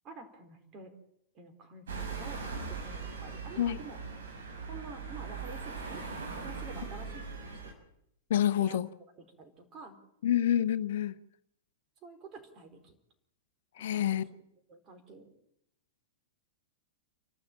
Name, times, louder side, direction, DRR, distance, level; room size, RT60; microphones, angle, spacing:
voice 1, 0.0-0.9 1.3-4.0 4.7-6.0 6.3-7.2 7.6-7.7 8.6-8.8 9.4-10.0 12.0-12.9 13.8-14.4 14.7-15.3, right 4 dB, 30° right, 6 dB, 4.4 m, -49 dB
sound 1, 1.9-7.7, right 5 dB, 70° right, 6.3 m, -40 dB
voice 2, 8.3-8.9 10.2-11.2 13.8-14.2, left 11 dB, 60° left, 13 dB, 0.8 m, -27 dB
29.0 x 12.5 x 8.9 m, 0.76 s
figure-of-eight pair, 100°, 0 cm